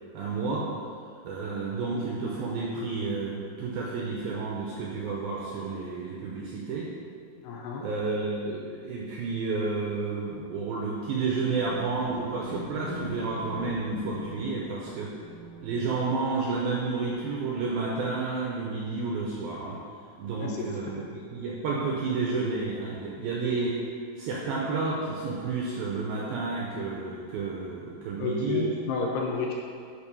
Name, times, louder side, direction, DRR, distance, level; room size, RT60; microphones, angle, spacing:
voice 1, 0.1-0.7 1.2-6.9 7.8-15.1 15.6-19.8 20.2-23.8 24.2-28.7, right 4 dB, 80° right, -3 dB, 2.2 m, -31 dB
voice 2, 7.4-7.8 20.4-20.7 28.2-29.5, left 3 dB, 75° left, -1 dB, 2.6 m, -30 dB
sound 1, 11.2-18.6 19.2-19.3, left 2 dB, 50° left, 1.9 m, -44 dB
10.5 x 4.4 x 5.5 m, 2.2 s
omnidirectional pair, 5.2 m